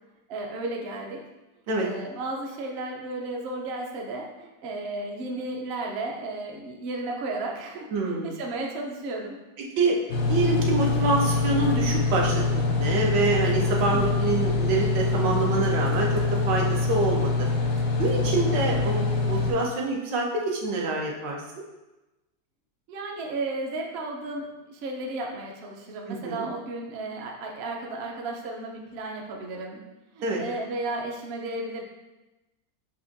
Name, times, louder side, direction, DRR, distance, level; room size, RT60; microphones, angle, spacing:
voice 1, 0.3-1.2 1.8-9.4 13.9-14.4 18.0-18.4 22.9-29.8 30.1-31.8, right 2 dB, 65° right, 0 dB, 0.6 m, -34 dB
voice 2, 7.9-8.3 9.8-10.0 10.3-17.5 18.0-21.4 26.1-26.5 30.2-30.4, right 3 dB, 85° right, -1 dB, 1.5 m, -26 dB
sound 1, 10.1-19.5, left 3 dB, 75° left, 0.6 m, -25 dB
sound 2, 10.3-15.5, left 11 dB, 90° left, 1.6 m, -39 dB
7.2 x 2.5 x 2.6 m, 1.0 s
omnidirectional pair, 1.9 m